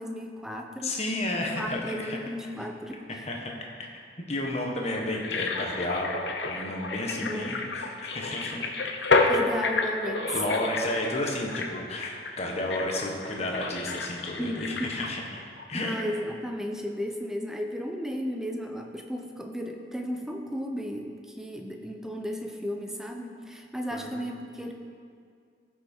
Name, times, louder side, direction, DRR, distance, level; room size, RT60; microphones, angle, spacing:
voice 1, 0.0-1.0 1.3-3.2 7.1-7.5 9.3-10.3 14.4-15.0 15.7-24.7, equal, 5° right, 3 dB, 0.7 m, -34 dB
voice 2, 0.8-2.2 3.1-3.5 3.8-3.9 4.3-8.6 9.0-9.4 10.3-15.2 15.7-16.0 23.9-24.1, left 1 dB, 35° left, 0 dB, 1.3 m, -32 dB
sound 1, 5.1-15.7 16.0-16.1, left 3 dB, 70° left, 0.8 m, -30 dB
14.0 x 6.3 x 4.5 m, 2.2 s
head